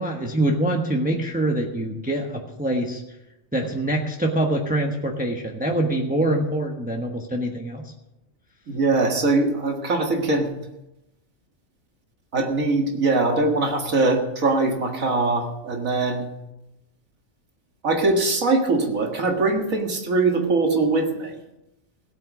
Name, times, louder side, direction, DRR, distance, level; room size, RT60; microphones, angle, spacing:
voice 1, 0.0-3.0 3.5-7.9, right 1 dB, 5° right, 1 dB, 1.2 m, -24 dB
voice 2, 8.7-10.5 12.3-16.3 17.8-21.4, right 3 dB, 85° right, 2 dB, 2.3 m, -22 dB
17.0 x 8.9 x 6.2 m, 0.92 s
omnidirectional pair, 1.4 m